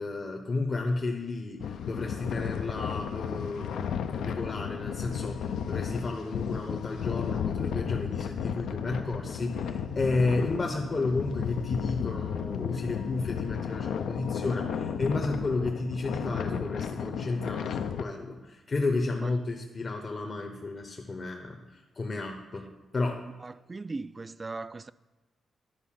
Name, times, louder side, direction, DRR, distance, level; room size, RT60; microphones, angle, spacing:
voice 1, 0.0-22.7 22.9-23.2, left 3 dB, 45° left, 0.8 m, -32 dB
sound 1, 1.6-18.0, left 7 dB, 80° left, 0.4 m, -33 dB
voice 2, 23.4-24.9, right 3 dB, 35° right, 0.3 m, -38 dB
10.5 x 4.1 x 5.7 m
supercardioid pair, 55°, 0 cm